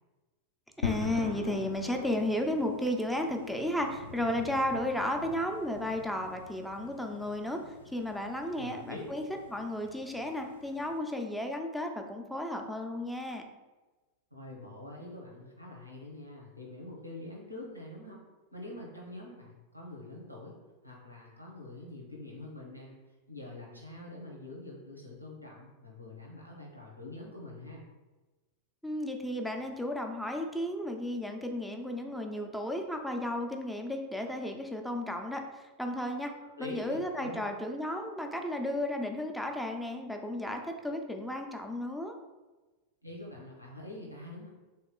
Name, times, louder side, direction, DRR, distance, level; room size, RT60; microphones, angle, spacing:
sound 1, 0.8-11.0, left 5 dB, 65° left, 0.4 m, -43 dB
voice 1, 0.8-9.2 9.5-13.4 28.8-36.3 36.6-42.2, left 1 dB, ahead, 3 dB, 0.5 m, -34 dB
voice 2, 8.5-9.0 14.3-18.2 18.5-20.6 20.8-22.9 23.3-27.8 36.4-37.4 43.0-44.5, left 2 dB, 90° right, -2 dB, 0.9 m, -45 dB
3.5 x 2.9 x 3.7 m, 1.2 s
figure-of-eight pair, 90°, 0 cm